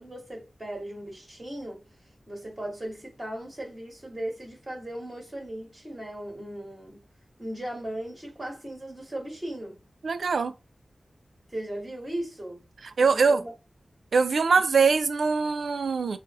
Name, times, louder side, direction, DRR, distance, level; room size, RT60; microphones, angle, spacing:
voice 1, 0.0-1.8 2.3-7.0 7.4-9.8 11.5-12.6 13.0-13.5, right 1 dB, 30° right, 2.2 m, -37 dB
voice 2, 10.0-10.5 13.0-13.4 14.1-16.2, right 5 dB, 90° right, 0.4 m, -22 dB
4.7 x 2.0 x 4.6 m
wide cardioid pair, 90°, 0 cm